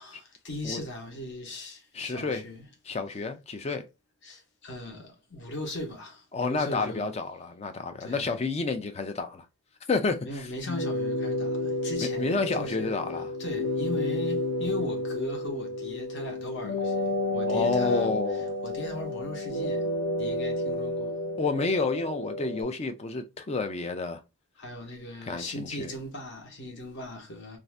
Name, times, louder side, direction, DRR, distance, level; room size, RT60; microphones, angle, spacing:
voice 1, 0.0-2.6 4.2-7.1 8.0-8.3 10.2-12.9 13.4-18.2 18.6-19.9 20.2-21.2 24.6-27.6, left 1 dB, 50° left, 0.9 m, -38 dB
voice 2, 1.9-2.4 2.9-3.9 6.3-9.5 9.9-10.5 12.2-13.3 17.5-18.4 21.4-24.2 25.3-25.9, left 3 dB, 30° left, 0.3 m, -30 dB
sound 1, 10.6-22.6, left 1 dB, 90° left, 0.7 m, -31 dB
2.6 x 2.5 x 3.1 m
head